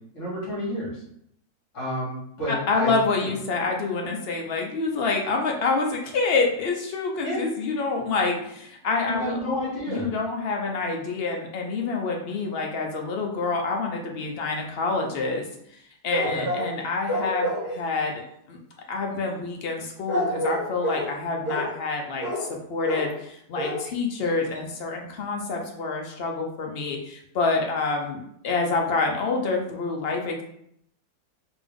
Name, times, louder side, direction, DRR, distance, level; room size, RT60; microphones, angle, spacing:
voice 1, 0.1-1.0 1.7-2.9 3.2-3.3 7.2-7.4 9.0-10.1 16.2-16.5, equal, 50° left, -7 dB, 2.0 m, -30 dB
voice 2, 2.5-9.4 9.9-15.4 15.7-15.8 16.0-18.2 18.5-18.6 18.9-30.4, left 3 dB, 70° left, 1 dB, 0.5 m, -27 dB
sound 1, 16.1-16.8 17.1-17.8 20.1-21.1 21.4-21.7 22.2-22.5 22.8-23.1 23.6-23.9 24.2-24.3 24.5-24.6, equal, 10° right, 1.3 m, -28 dB
3.5 x 2.9 x 3.6 m, 0.73 s
omnidirectional pair, 1.8 m